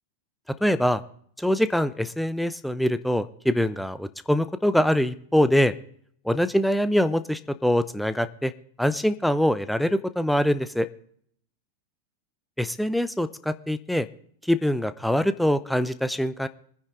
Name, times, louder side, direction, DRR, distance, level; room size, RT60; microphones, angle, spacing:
voice 1, 0.6-1.0 1.4-5.7 6.2-8.5 8.8-10.9 12.6-14.1 14.5-16.5, equal, ahead, 13 dB, 0.7 m, -24 dB
23.0 x 10.0 x 3.8 m, 0.63 s
figure-of-eight pair, 90°, 0 cm